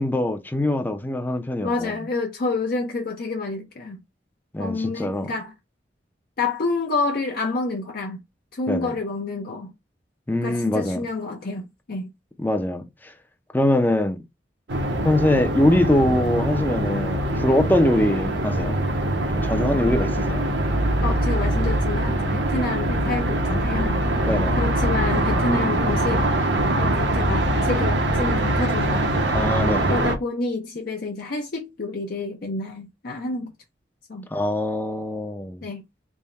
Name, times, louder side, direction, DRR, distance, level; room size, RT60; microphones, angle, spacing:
voice 1, 0.0-2.0 4.5-5.3 8.7-8.9 10.3-11.0 12.4-13.1 13.5-14.2 15.0-18.8 19.4-20.4 24.2-24.6 29.3-30.0 34.3-35.7, left 1 dB, 10° left, 0.5 m, -23 dB
voice 2, 1.6-4.0 4.6-5.5 6.4-8.2 8.5-9.7 10.4-12.1 20.0-20.1 21.0-24.0 24.6-26.2 26.8-29.1 29.9-33.5 34.1-34.3 35.6-35.8, left 3 dB, 55° left, 0.6 m, -28 dB
sound 1, 14.7-30.1, right 1 dB, 75° right, 0.9 m, -23 dB
3.5 x 2.2 x 4.0 m
head